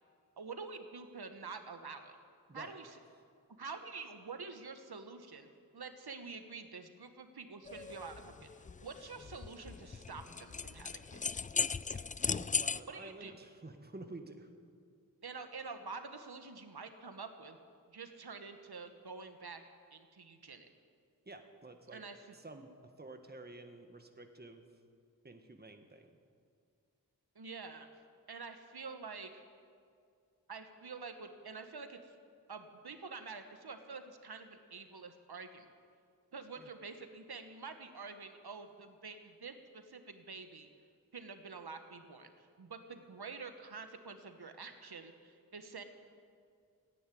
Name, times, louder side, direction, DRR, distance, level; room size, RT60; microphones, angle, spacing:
voice 1, 0.4-2.1 2.5-2.9 3.5-5.5 5.7-11.2 12.9-13.3 15.2-17.6 17.9-19.6 19.9-20.7 21.9-22.2 27.3-27.9 28.3-29.4 30.5-32.1 32.5-35.7 36.3-40.7 41.1-45.8, right 4 dB, 75° right, 7 dB, 1.3 m, -47 dB
sound 1, 7.7-12.8, left 5 dB, 20° left, 0.3 m, -37 dB
voice 2, 12.4-14.5 21.2-22.0 22.3-24.7 25.2-26.1 36.6-36.7, right 2 dB, 25° right, 6 dB, 1.4 m, -51 dB
14.5 x 9.9 x 9.4 m, 2.3 s
cardioid pair, 40°, 38 cm